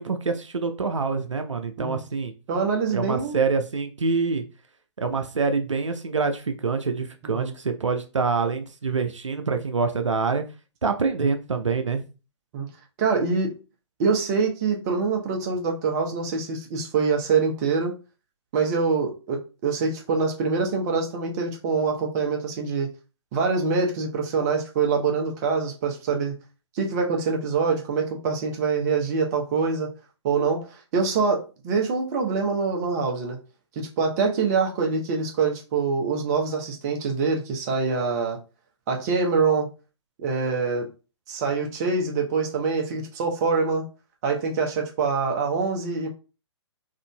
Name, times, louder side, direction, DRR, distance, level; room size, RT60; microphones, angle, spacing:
voice 1, 0.0-2.3 2.9-4.4 5.0-10.4 10.8-12.0, right 4 dB, 90° right, 7 dB, 0.5 m, -26 dB
voice 2, 2.5-3.4 7.2-7.5 12.5-12.7 13.0-13.6 14.0-17.9 18.5-22.9 23.3-26.3 26.7-29.9 30.2-33.4 33.8-38.4 38.9-39.7 40.2-40.9 41.3-43.8 44.2-46.1, right 4 dB, 35° right, 2 dB, 0.8 m, -25 dB
3.7 x 2.5 x 2.2 m, 0.32 s
figure-of-eight pair, 125°, 15 cm